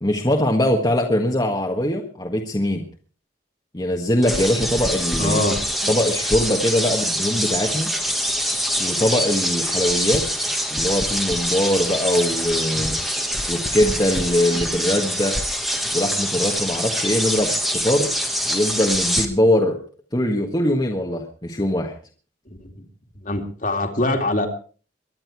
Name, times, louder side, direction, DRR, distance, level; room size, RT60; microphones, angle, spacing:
voice 1, 0.0-2.8 3.7-5.4 5.9-7.9 8.8-10.2 10.7-13.0 13.5-15.3 15.9-18.1 18.5-19.8 20.1-21.9, left 1 dB, 20° left, 0 dB, 1.6 m, -22 dB
sound 1, 4.2-19.2, equal, ahead, 1.5 m, -24 dB
voice 2, 5.2-5.6 12.7-13.0 22.6-22.7 23.2-24.5, left 1 dB, 40° left, 4 dB, 2.5 m, -23 dB
23.0 x 10.5 x 4.7 m, 0.40 s
head